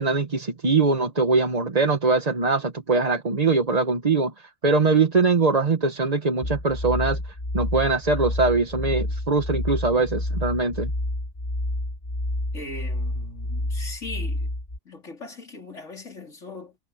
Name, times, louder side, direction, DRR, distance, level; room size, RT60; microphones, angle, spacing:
voice 1, 0.0-7.2 7.5-10.9, right 3 dB, 30° right, 1.2 m, -22 dB
sound 1, 6.4-14.8, left 1 dB, 30° left, 2.1 m, -29 dB
voice 2, 12.5-14.5 14.8-16.8, left 2 dB, 60° left, 4.3 m, -39 dB
omnidirectional pair, 1.4 m